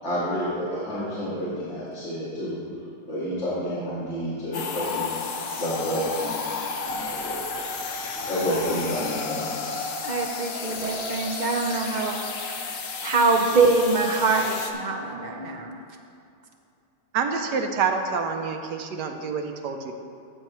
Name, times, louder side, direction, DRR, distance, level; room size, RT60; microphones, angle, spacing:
voice 1, 0.0-2.6 3.1-5.1 5.6-6.3 6.8-7.4 8.2-9.5, equal, 40° left, -11 dB, 2.4 m, -29 dB
sound 1, 4.5-14.7, left 4 dB, 55° left, 0.7 m, -32 dB
voice 2, 10.0-12.7 13.0-15.8, right 3 dB, 60° right, 1 dB, 0.4 m, -24 dB
voice 3, 17.1-19.9, right 5 dB, 75° right, 5 dB, 1.3 m, -27 dB
14.0 x 7.7 x 3.1 m, 2.5 s
omnidirectional pair, 1.9 m